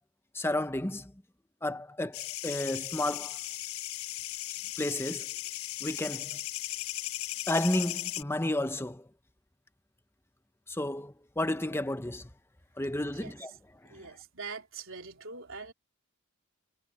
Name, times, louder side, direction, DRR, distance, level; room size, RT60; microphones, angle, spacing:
voice 1, 0.3-1.1 1.6-3.4 4.8-5.3 5.8-6.4 7.5-9.0 10.7-12.2 12.8-13.5, left 1 dB, 10° left, 0.9 m, -32 dB
sound 1, 2.1-8.2, left 15 dB, 90° left, 0.6 m, -37 dB
voice 2, 13.9-15.7, right 4 dB, 70° right, 3.9 m, -43 dB
head